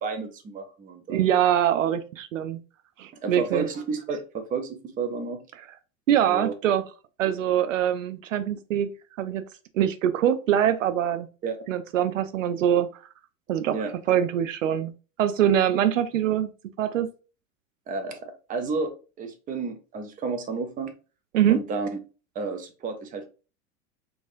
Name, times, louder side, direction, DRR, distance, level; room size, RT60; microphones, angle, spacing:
voice 1, 0.0-1.2 3.2-5.4 6.3-6.5 11.4-11.6 13.7-13.9 17.9-18.9 19.2-20.9 21.5-22.0 22.3-23.3, right 4 dB, 20° right, 8 dB, 0.6 m, -31 dB
voice 2, 1.1-2.6 3.0-3.7 6.1-6.8 7.2-8.9 9.2-9.4 9.7-11.3 11.7-12.9 13.5-13.8 14.1-14.9 15.2-16.5 16.8-17.1 21.3-21.6, right 10 dB, 70° right, 11 dB, 0.5 m, -23 dB
4.6 x 2.5 x 2.5 m, 0.34 s
figure-of-eight pair, 85°, 40 cm